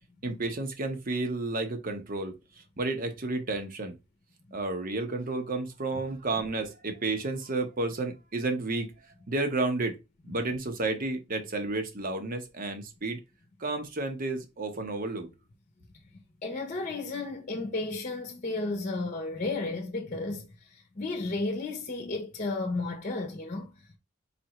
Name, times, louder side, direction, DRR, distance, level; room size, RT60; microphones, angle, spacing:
voice 1, 0.2-4.0 4.5-8.9 9.3-10.0 10.2-13.2 13.6-15.3, right 2 dB, 45° right, 0.9 m, -31 dB
voice 2, 16.4-24.0, left 2 dB, 40° left, 0.8 m, -33 dB
4.3 x 3.4 x 3.0 m
head